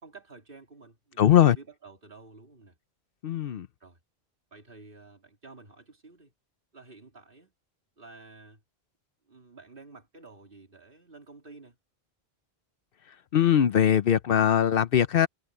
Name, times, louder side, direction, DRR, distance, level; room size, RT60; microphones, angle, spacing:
voice 1, 0.0-2.8 3.8-4.0 4.5-6.3 6.7-7.5 8.0-8.6 9.3-11.8, right 3 dB, 55° right, 3.4 m, -50 dB
voice 2, 1.2-1.6 3.2-3.7 13.3-15.3, left 10 dB, 65° left, 0.8 m, -21 dB
omnidirectional pair, 1.1 m